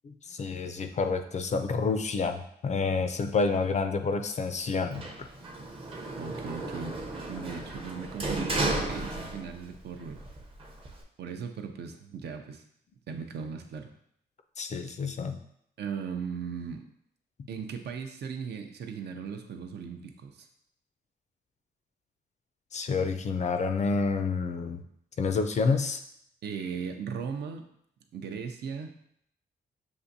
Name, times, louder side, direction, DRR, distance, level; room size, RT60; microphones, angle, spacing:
voice 1, 0.0-5.0 14.6-15.4 22.7-24.8 25.2-26.0, left 4 dB, 40° left, 7 dB, 0.4 m, -29 dB
Sliding door, 4.9-9.8 10.1-11.0, right 2 dB, 30° right, 0.7 m, -34 dB
voice 2, 6.2-7.0 7.3-10.2 11.2-12.6 13.1-13.9 15.8-16.8 17.5-20.5 26.4-27.7 28.1-28.9, right 6 dB, 70° right, 5 dB, 0.6 m, -38 dB
6.9 x 2.5 x 2.7 m, 0.71 s
cardioid pair, 120°, 18 cm